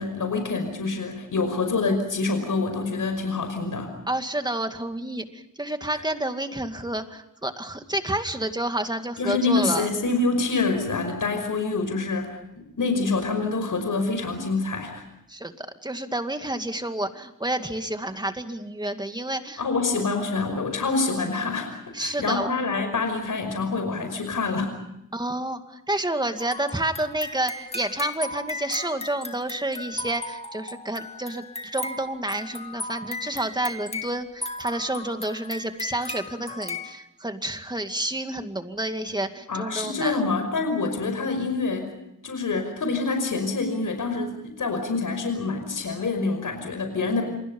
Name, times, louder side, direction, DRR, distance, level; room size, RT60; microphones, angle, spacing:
voice 1, 0.0-3.9 9.2-15.1 19.6-24.8 39.5-41.9 42.2-47.2, left 3 dB, 75° left, 6 dB, 5.6 m, -26 dB
voice 2, 4.1-9.9 15.3-19.6 21.9-22.5 25.1-40.2, right 1 dB, 15° right, 7 dB, 2.3 m, -29 dB
sound 1, 26.4-36.9, left 2 dB, 20° left, 2.5 m, -36 dB
29.0 x 28.5 x 5.5 m, 0.85 s
wide cardioid pair, 150°, 32 cm